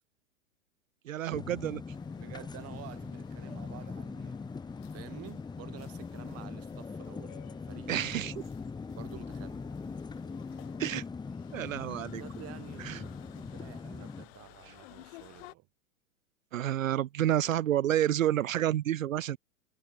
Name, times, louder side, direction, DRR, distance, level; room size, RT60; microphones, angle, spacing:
voice 1, 1.0-1.8 7.9-8.4 10.8-11.0 11.5-12.2 12.8-13.0 16.5-19.4, right 12 dB, 70° right, 0.7 m, -29 dB
sound 1, 1.3-14.3, left 4 dB, 10° left, 1.7 m, -41 dB
sound 2, 1.9-15.5, left 24 dB, 50° left, 2.9 m, -56 dB
voice 2, 2.2-4.4 4.9-8.2 9.0-9.7 12.2-15.7, right 18 dB, 35° right, 5.9 m, -50 dB
figure-of-eight pair, 100°, 41 cm